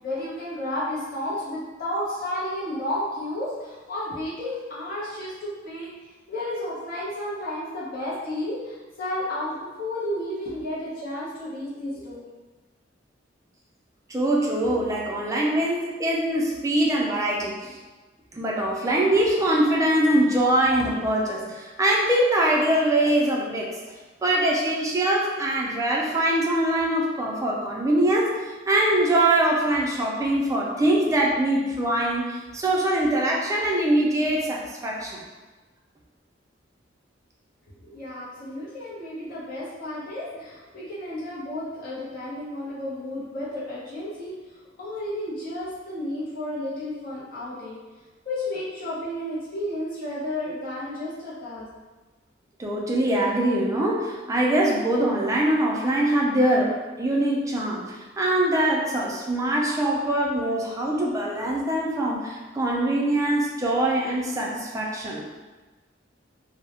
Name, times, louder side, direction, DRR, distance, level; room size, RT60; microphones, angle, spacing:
voice 1, 0.0-5.9 6.3-12.2 37.8-44.4 44.8-47.8 48.2-51.7, left 1 dB, 50° left, -9 dB, 0.6 m, -32 dB
voice 2, 14.1-17.8 18.3-23.7 24.2-35.2 52.6-56.7 57.0-65.2, right 1 dB, 15° right, -2 dB, 0.3 m, -23 dB
2.2 x 2.0 x 2.8 m, 1.3 s
head